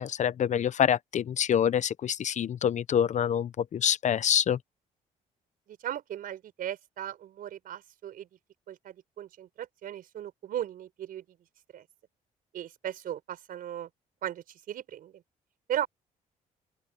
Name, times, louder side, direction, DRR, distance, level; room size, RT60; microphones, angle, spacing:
voice 1, 0.0-4.6, left 9 dB, 50° left, 0.7 m, -26 dB
voice 2, 5.7-8.3 8.7-11.2 11.7-11.8 12.5-13.9 14.2-15.2 15.7-15.9, right 11 dB, 70° right, 4.7 m, -37 dB
open air
cardioid pair, 80°, 15 cm